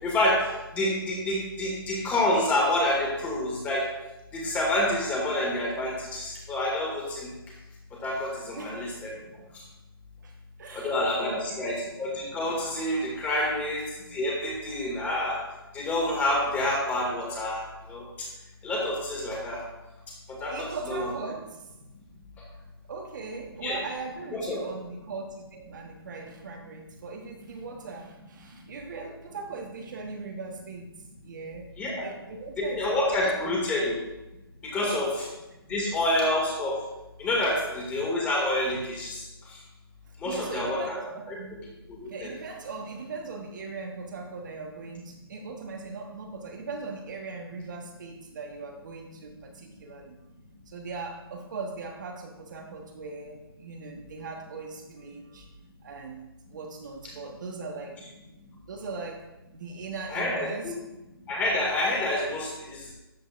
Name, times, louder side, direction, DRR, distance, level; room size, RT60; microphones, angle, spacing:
voice 1, 0.0-3.9 4.3-7.3 8.0-9.2 9.5-9.6 10.7-15.4 15.7-18.3 18.6-19.6 20.3-20.5 20.9-21.1 23.6-23.8 24.3-24.6 31.8-32.1 32.6-34.0 34.6-35.1 35.7-36.8 37.2-39.6 40.2-41.0 41.3-41.4 41.9-42.3 60.1-60.7 61.3-62.9, left 1 dB, 10° left, -2 dB, 2.1 m, -28 dB
voice 2, 8.5-8.9 10.2-11.8 20.5-21.7 22.9-31.7 32.0-32.9 34.8-35.1 40.1-41.6 42.1-50.2 50.7-55.5 55.8-58.0 58.7-60.7, right 4 dB, 50° right, 2 dB, 1.3 m, -39 dB
12.5 x 7.6 x 2.5 m, 0.99 s
hypercardioid pair, 155°, 13 cm